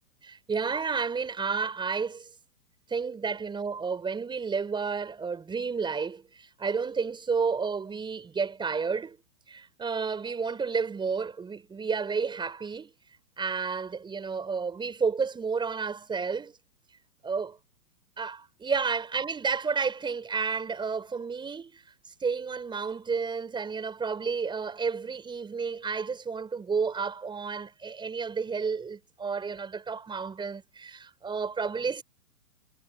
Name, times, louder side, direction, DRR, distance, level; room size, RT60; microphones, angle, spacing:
voice 1, 0.2-2.3 2.9-9.2 9.5-12.9 13.4-16.5 17.2-17.6 18.2-21.8 22.2-32.0, right 5 dB, 10° right, 5.7 m, -31 dB
hypercardioid pair, 140°, 46 cm